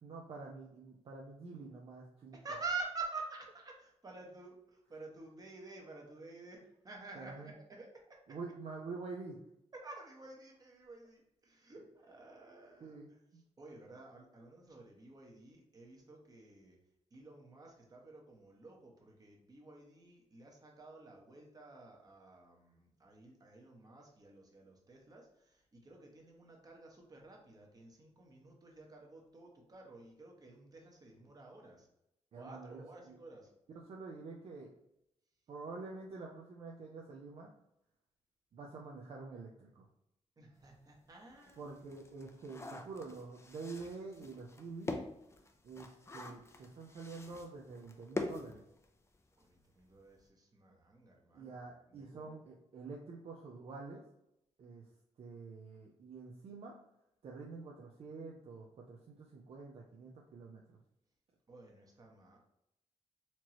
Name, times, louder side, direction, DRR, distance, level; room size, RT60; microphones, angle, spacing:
voice 1, 0.0-2.4 7.1-7.5 8.3-9.4 12.8-13.4 32.3-33.2 33.8-34.7 35.5-37.5 38.5-39.9 41.6-44.9 45.6-48.6 51.3-54.0 54.6-54.8 55.2-56.8 57.2-60.8, right 4 dB, 55° right, -1 dB, 0.6 m, -47 dB
voice 2, 2.3-8.4 9.7-13.0 13.6-16.8 17.1-31.9 32.3-33.5 40.4-41.7 49.4-51.6 51.9-52.3 61.5-62.4, right 3 dB, 30° right, 0 dB, 1.0 m, -49 dB
sound 1, 40.6-40.7 41.2-49.3 49.5-49.6 49.9-50.2, left 2 dB, 25° left, 0.5 m, -45 dB
4.4 x 3.0 x 2.9 m, 0.81 s
cardioid pair, 120°, 12 cm